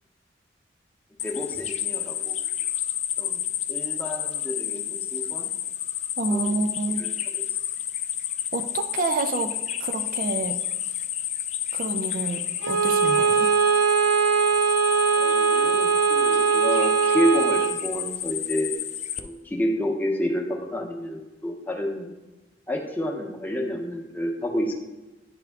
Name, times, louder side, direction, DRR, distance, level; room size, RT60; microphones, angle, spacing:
sound 1, 1.2-19.2, left 11 dB, 40° left, 0.4 m, -30 dB
voice 1, 1.2-2.4 3.2-3.4 3.7-5.5 6.3-6.6 7.0-7.4 15.2-18.8 19.2-22.2 22.7-24.7, equal, 10° left, 1 dB, 0.8 m, -29 dB
voice 2, 6.2-7.0 8.5-10.6 11.7-13.5, right 3 dB, 50° right, 8 dB, 0.4 m, -29 dB
Bowed string instrument, 12.6-17.8, right 6 dB, 90° right, 0.8 m, -21 dB
9.8 x 3.4 x 3.5 m, 1.1 s
head